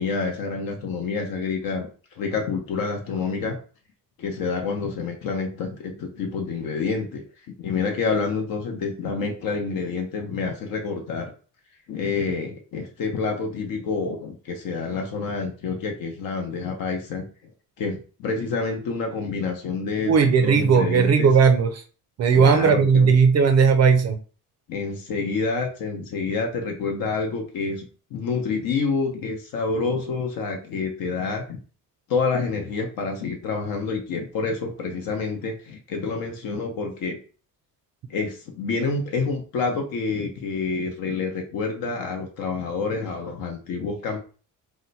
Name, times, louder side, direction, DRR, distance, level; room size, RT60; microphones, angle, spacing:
voice 1, 0.0-1.9 2.2-3.6 4.2-7.2 7.6-11.3 11.9-17.5 17.8-20.1 20.4-21.3 22.3-23.2 24.7-27.8 28.1-31.6 32.1-37.2 38.1-44.2, left 4 dB, 65° left, 2 dB, 0.8 m, -28 dB
voice 2, 20.1-21.8 22.2-24.2, right 6 dB, 45° right, 8 dB, 0.4 m, -17 dB
2.8 x 2.1 x 3.9 m, 0.38 s
cardioid pair, 130°, 37 cm